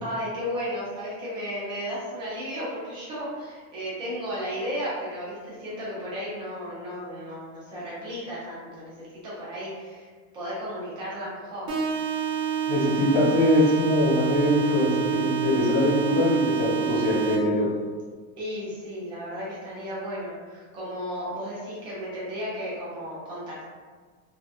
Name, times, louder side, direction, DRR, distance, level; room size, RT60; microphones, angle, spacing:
voice 1, 0.0-10.1 10.3-11.7 18.4-23.7, equal, 15° right, -9 dB, 0.3 m, -34 dB
sound 1, 11.7-17.7, right 8 dB, 90° right, 1.1 m, -27 dB
voice 2, 12.7-17.7, left 1 dB, 70° left, -5 dB, 1.1 m, -23 dB
2.8 x 2.2 x 2.3 m, 1.5 s
supercardioid pair, 165°, 42 cm